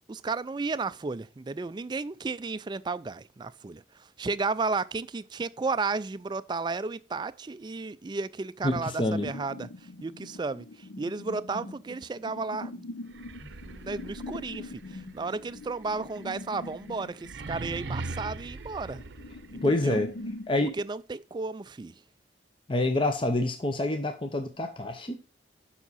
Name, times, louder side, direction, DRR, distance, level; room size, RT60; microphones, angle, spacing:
voice 1, 0.1-9.7 10.0-12.9 13.7-19.0 19.5-20.0 20.6-21.9, right 4 dB, 25° right, 0.3 m, -33 dB
voice 2, 8.6-9.3 19.6-20.1 20.5-20.7 22.7-25.2, left 2 dB, 30° left, 0.7 m, -27 dB
sound 1, 9.1-20.5, left 2 dB, 75° left, 0.6 m, -43 dB
sound 2, 13.1-20.0, right 3 dB, 75° right, 0.6 m, -41 dB
7.2 x 5.7 x 4.1 m
head